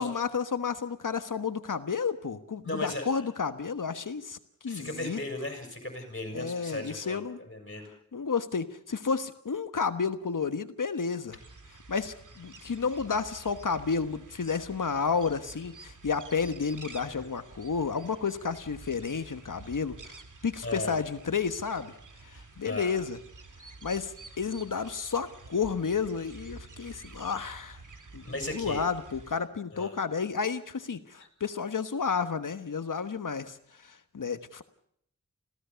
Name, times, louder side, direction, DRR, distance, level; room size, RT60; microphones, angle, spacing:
voice 1, 0.0-4.4 4.6-5.2 6.3-7.4 8.1-11.4 11.9-21.9 22.6-23.2 23.8-27.8 28.1-33.6 33.8-34.6, left 5 dB, 85° left, 10 dB, 1.3 m, -31 dB
voice 2, 2.6-3.3 4.7-7.9 17.1-17.3 20.6-21.0 22.3-23.0 28.2-28.8 29.7-30.0, left 1 dB, 40° left, 3 dB, 6.2 m, -37 dB
sound 1, 11.3-29.4, right 3 dB, 75° right, 2.4 m, -50 dB
26.5 x 16.0 x 7.0 m, 0.69 s
wide cardioid pair, 55°, 31 cm